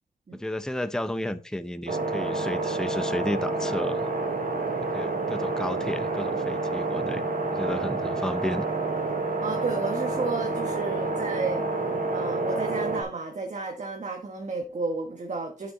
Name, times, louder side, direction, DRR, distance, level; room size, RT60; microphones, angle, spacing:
voice 1, 0.3-4.1 4.9-7.2 7.5-8.7, left 1 dB, 5° left, 0.6 m, -32 dB
sound 1, 1.9-13.0, right 3 dB, 75° right, 3.1 m, -28 dB
voice 2, 9.4-11.6 12.1-15.7, right 3 dB, 55° right, 1.4 m, -32 dB
8.1 x 7.0 x 3.8 m
wide cardioid pair, 85°, 15 cm